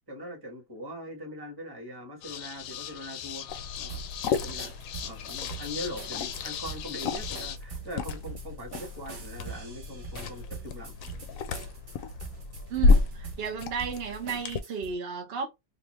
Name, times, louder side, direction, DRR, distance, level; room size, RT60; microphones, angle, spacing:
voice 1, 0.1-3.5 3.8-4.7 5.0-10.9, equal, 15° right, 1.1 m, -41 dB
sound 1, 2.2-7.6, left 10 dB, 85° left, 1.2 m, -39 dB
Liquid, 3.5-14.6, left 3 dB, 65° left, 0.9 m, -31 dB
sound 2, 3.9-14.9, right 6 dB, 40° right, 1.1 m, -44 dB
voice 2, 12.7-15.5, right 6 dB, 65° right, 0.6 m, -33 dB
3.5 x 2.6 x 3.0 m
omnidirectional pair, 1.8 m